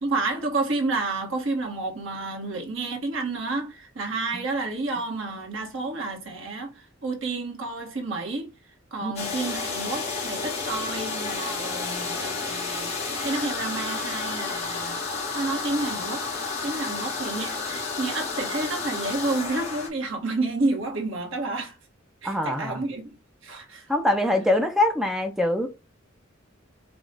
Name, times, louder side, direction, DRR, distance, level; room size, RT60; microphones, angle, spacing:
voice 1, 0.0-8.5 8.9-21.8 22.2-23.1 23.4-23.9, right 3 dB, 65° right, 1.4 m, -30 dB
sound 1, 9.2-19.9, left 4 dB, 30° left, 2.0 m, -31 dB
voice 2, 22.2-22.8 23.9-25.7, left 1 dB, ahead, 0.5 m, -23 dB
5.0 x 2.4 x 3.9 m
head